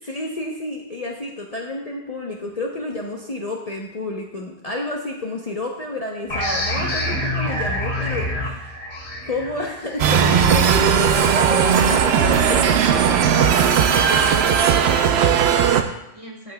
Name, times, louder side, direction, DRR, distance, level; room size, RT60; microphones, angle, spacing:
voice 1, 0.0-8.6 9.2-13.5, left 2 dB, 40° left, -1 dB, 0.8 m, -30 dB
sound 1, 6.3-11.6, left 1 dB, 70° left, 1.9 m, -27 dB
sound 2, 10.0-15.8, right 7 dB, 70° right, 0.8 m, -17 dB
voice 2, 13.9-16.5, right 1 dB, 30° right, -2 dB, 1.4 m, -44 dB
13.0 x 5.7 x 2.2 m, 0.84 s
omnidirectional pair, 1.1 m